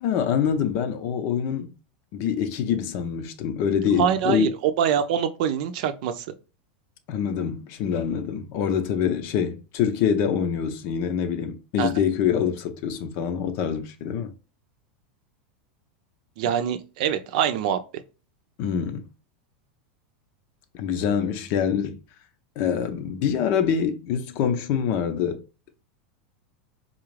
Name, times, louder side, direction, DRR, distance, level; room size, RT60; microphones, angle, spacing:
voice 1, 0.0-1.7 2.1-4.5 7.1-14.3 18.6-19.1 20.7-22.0 22.6-25.4, left 8 dB, 55° left, 0.7 m, -25 dB
voice 2, 4.0-6.3 11.8-11.9 16.4-17.8, right 9 dB, 65° right, 0.6 m, -24 dB
3.9 x 2.4 x 3.1 m
hypercardioid pair, 110°, 5 cm